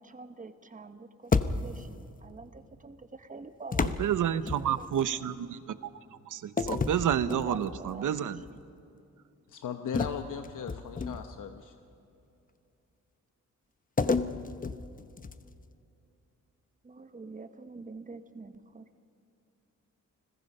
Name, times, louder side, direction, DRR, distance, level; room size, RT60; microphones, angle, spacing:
voice 1, 0.0-4.0 4.3-4.9 5.1-5.3 7.3-8.6 16.8-18.8, right 3 dB, 25° right, 10 dB, 1.1 m, -46 dB
sound 1, 1.3-2.0 3.7-5.1 6.6-7.9 8.4-8.6 9.9-11.4 14.0-15.6, left 4 dB, 25° left, 0.8 m, -31 dB
voice 2, 3.8-5.7 6.3-8.4, right 9 dB, 80° right, 14 dB, 0.9 m, -30 dB
voice 3, 9.5-11.7, left 7 dB, 90° left, 6 dB, 1.1 m, -38 dB
29.5 x 20.5 x 5.5 m, 2.6 s
wide cardioid pair, 135°, 31 cm